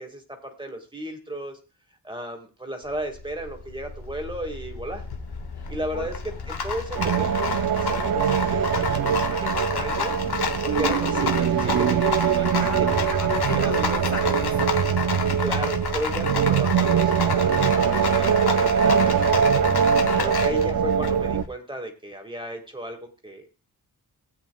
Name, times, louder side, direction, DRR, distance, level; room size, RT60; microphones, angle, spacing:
voice 1, 0.0-1.6 2.0-5.0 5.7-10.2 10.6-12.7 13.6-14.4 15.4-19.7 20.2-23.5, right 1 dB, 15° right, 4 dB, 1.9 m, -34 dB
Rattle, 2.9-21.5, left 5 dB, 80° left, 1.2 m, -30 dB
voice 2, 5.5-6.1 12.5-15.0 19.9-20.4, left 5 dB, 50° left, 7 dB, 1.0 m, -36 dB
sound 1, 6.9-21.4, right 8 dB, 60° right, 0.6 m, -22 dB
17.5 x 8.3 x 2.3 m, 0.34 s
wide cardioid pair, 85°, 38 cm